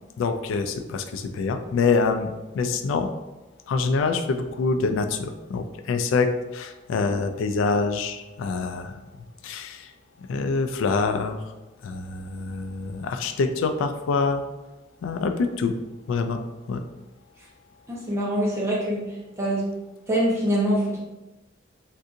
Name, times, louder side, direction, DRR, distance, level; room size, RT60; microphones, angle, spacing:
voice 1, 0.2-3.1 3.7-9.0 9.4-9.9 10.3-11.4 11.8-14.4 15.0-15.8 16.1-16.4 16.7-16.8, left 4 dB, 85° left, 9 dB, 0.3 m, -25 dB
voice 2, 17.9-19.7 20.1-21.0, right 1 dB, 15° right, -6 dB, 0.8 m, -24 dB
3.7 x 2.6 x 2.5 m, 1.1 s
head